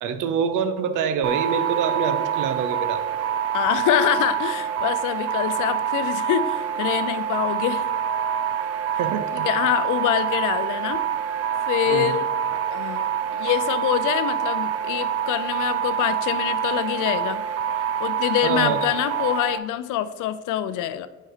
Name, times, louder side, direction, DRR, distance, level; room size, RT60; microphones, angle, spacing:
voice 1, 0.0-3.0 9.0-9.5 11.9-12.1 18.4-18.8, right 6 dB, 90° right, 10 dB, 0.6 m, -25 dB
sound 1, 1.2-19.6, right 8 dB, 55° right, 0.4 m, -26 dB
voice 2, 3.5-7.9 9.4-11.0 11.7-12.2 12.7-13.1 13.3-17.4 18.0-21.1, left 12 dB, 85° left, 14 dB, 0.5 m, -25 dB
6.4 x 4.2 x 4.9 m, 1.3 s
cardioid pair, 90°, 30 cm